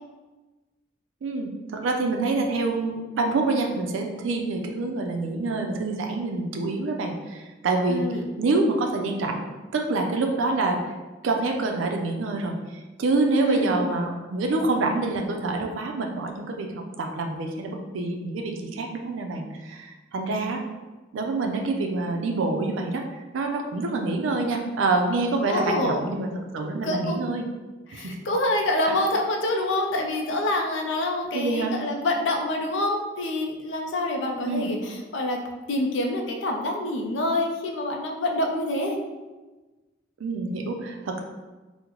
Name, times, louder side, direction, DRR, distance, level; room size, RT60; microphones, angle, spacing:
voice 1, 1.2-8.0 8.4-9.4 9.7-10.8 11.2-20.6 21.1-26.3 26.5-27.5 27.9-28.1 28.9-29.0 31.3-31.7 34.4-34.7 40.2-41.2, right 3 dB, 85° right, 3 dB, 0.4 m, -26 dB
voice 2, 7.9-8.3 13.3-13.8 25.5-26.0 26.6-27.2 27.9-35.4 35.7-39.0, left 1 dB, 70° left, 2 dB, 0.5 m, -26 dB
3.7 x 2.1 x 2.9 m, 1.2 s
head